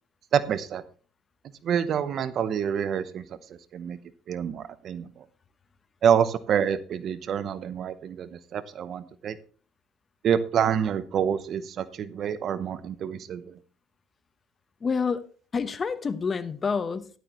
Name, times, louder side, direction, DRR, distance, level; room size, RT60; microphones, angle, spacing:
voice 1, 0.3-0.8 1.6-3.4 3.7-4.0 4.3-5.2 6.0-9.4 10.2-13.6, right 8 dB, 50° right, 15 dB, 0.7 m, -27 dB
voice 2, 14.8-15.2 15.5-17.1, left 5 dB, 35° left, 13 dB, 1.0 m, -28 dB
12.5 x 11.5 x 3.0 m, 0.40 s
supercardioid pair, 85°, 0 cm